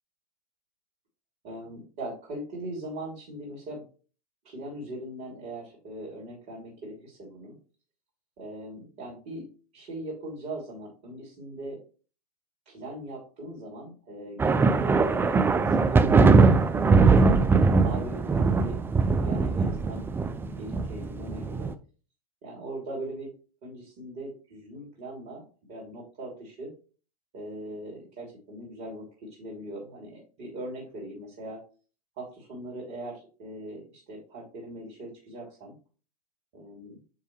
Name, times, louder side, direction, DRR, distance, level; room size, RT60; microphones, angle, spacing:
voice 1, 1.4-3.8 4.4-7.6 8.4-9.4 9.7-11.8 12.6-17.1 17.8-18.8 19.0-20.1 20.4-21.7 22.4-23.3 23.6-25.4 25.7-26.7 27.3-31.6 32.2-35.7 36.5-37.0, right 1 dB, 45° right, -1 dB, 3.1 m, -40 dB
sound 1, 14.4-21.7, right 4 dB, 10° right, 0.5 m, -21 dB
9.5 x 3.4 x 3.2 m, 0.36 s
hypercardioid pair, 105°, 20 cm